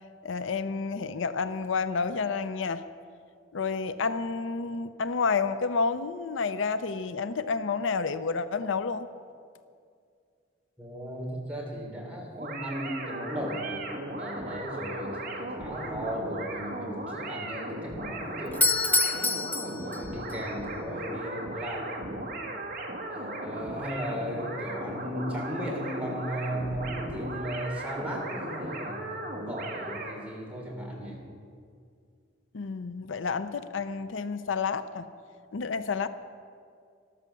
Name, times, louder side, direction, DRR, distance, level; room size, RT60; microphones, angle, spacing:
voice 1, 0.2-2.8 3.5-9.1 32.5-35.1 35.5-36.1, left 5 dB, 80° left, 12 dB, 0.6 m, -30 dB
voice 2, 10.8-19.3 19.6-22.5 23.1-31.2, equal, 5° right, -3 dB, 3.3 m, -36 dB
sound 1, 12.3-30.2, right 1 dB, 50° right, 1.9 m, -37 dB
Doorbell, 18.5-20.4, left 3 dB, 10° left, 0.5 m, -26 dB
13.5 x 13.0 x 6.8 m, 2.3 s
head